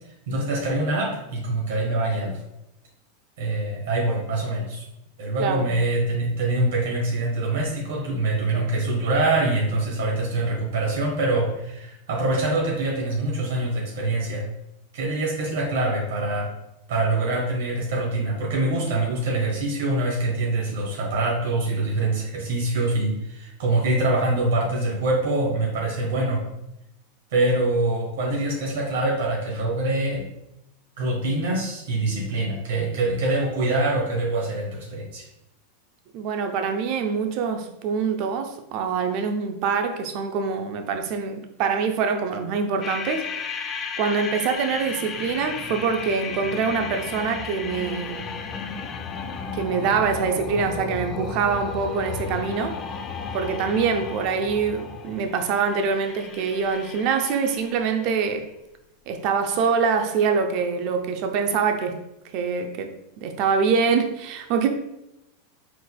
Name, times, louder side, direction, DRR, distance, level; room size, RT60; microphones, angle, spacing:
voice 1, 0.3-2.4 3.4-4.8 5.2-14.4 14.9-16.5 16.9-26.4 27.3-30.2 31.0-35.3, right 2 dB, 75° right, 1.2 m, -24 dB
voice 2, 5.4-5.8 36.1-43.6 44.0-48.3 49.5-52.8 53.3-58.5 59.1-62.0 62.3-64.7, right 5 dB, 55° right, 0.6 m, -25 dB
sound 1, 42.8-58.1, left 5 dB, 30° left, 0.5 m, -34 dB
4.6 x 4.0 x 2.3 m
hypercardioid pair, 105°, 0 cm